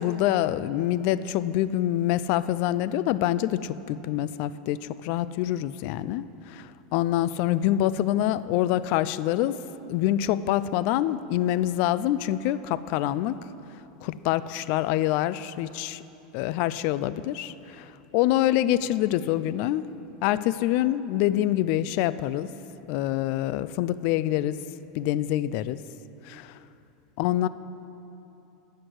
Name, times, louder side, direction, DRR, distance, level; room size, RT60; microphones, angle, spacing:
voice 1, 0.0-13.4 14.0-16.0 16.3-19.8 20.2-22.5 22.9-24.6 24.9-25.8 26.2-26.6 27.2-27.5, left 13 dB, 55° left, 15 dB, 0.3 m, -26 dB
9.5 x 6.5 x 7.8 m, 3.0 s
supercardioid pair, 135°, 3 cm